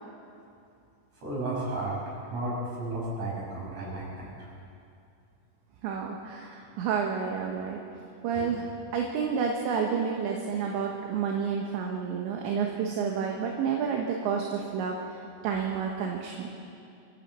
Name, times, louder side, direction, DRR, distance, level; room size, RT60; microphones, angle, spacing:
voice 1, 1.2-2.0 2.3-4.5 8.3-8.5, right 2 dB, 35° right, -5 dB, 7.4 m, -33 dB
voice 2, 5.8-7.8 8.2-8.7 8.9-15.0 15.4-16.5, right 6 dB, 70° right, 1 dB, 3.4 m, -30 dB
24.5 x 14.5 x 7.7 m, 2.6 s
omnidirectional pair, 5.8 m